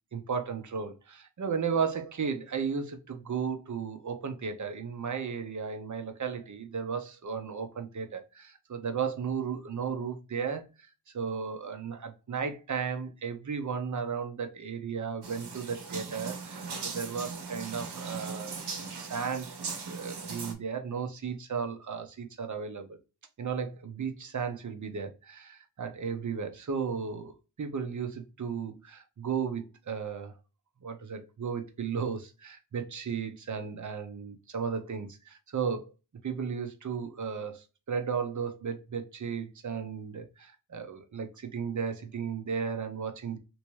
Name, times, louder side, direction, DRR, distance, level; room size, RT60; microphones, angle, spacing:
voice 1, 0.1-10.7 11.1-18.6 19.0-19.5 19.9-23.0 23.4-30.3 30.8-35.9 36.2-43.4, right 6 dB, 45° right, 0.7 m, -35 dB
sound 1, 15.2-20.5, right 5 dB, 70° right, 1.0 m, -39 dB
3.4 x 2.8 x 3.0 m
wide cardioid pair, 100°, 40 cm